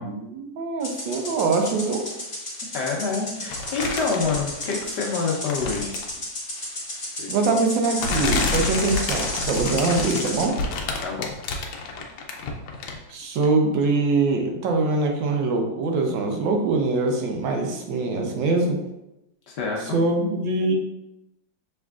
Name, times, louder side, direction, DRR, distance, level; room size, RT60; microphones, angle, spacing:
voice 1, 0.0-2.0 7.3-10.6 13.1-18.8 19.9-20.7, right 3 dB, 75° right, 2 dB, 1.4 m, -23 dB
sound 1, 0.8-10.5, left 1 dB, 30° left, 1.5 m, -33 dB
voice 2, 2.7-6.0 11.0-11.3 19.5-20.0, left 4 dB, 65° left, 0 dB, 1.3 m, -27 dB
sound 2, 3.5-5.0 5.4-6.2 7.2-7.3 8.0-13.1 13.4-13.5, left 3 dB, 85° left, 1.4 m, -29 dB
6.5 x 3.5 x 2.4 m, 0.87 s
omnidirectional pair, 2.1 m